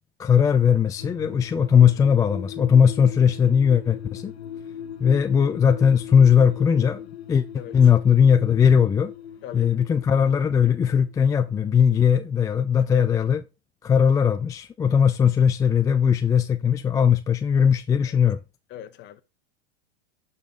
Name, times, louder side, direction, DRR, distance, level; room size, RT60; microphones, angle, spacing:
voice 1, 0.2-4.3 5.0-7.0 7.3-7.4 7.7-9.1 9.5-13.4 13.8-18.4, left 7 dB, 10° left, 0.4 m, -19 dB
sound 1, 1.0-11.8 12.0-12.1, left 10 dB, 80° left, 1.0 m, -40 dB
voice 2, 9.4-9.8 18.0-18.2 18.7-19.2, left 11 dB, 35° left, 1.2 m, -40 dB
11.5 x 5.5 x 3.9 m
hypercardioid pair, 115°, 32 cm